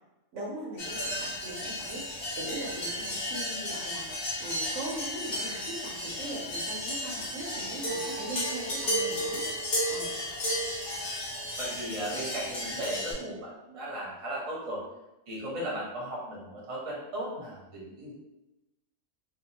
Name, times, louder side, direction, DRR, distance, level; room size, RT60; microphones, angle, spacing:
voice 1, 0.3-9.4 9.9-10.1, right 2 dB, 70° right, -4 dB, 0.9 m, -40 dB
sound 1, 0.8-13.1, equal, 50° left, 1.0 m, -33 dB
voice 2, 11.6-14.8 15.3-18.1, right 1 dB, 30° right, -5 dB, 0.7 m, -36 dB
2.7 x 2.3 x 2.7 m, 0.96 s
omnidirectional pair, 1.4 m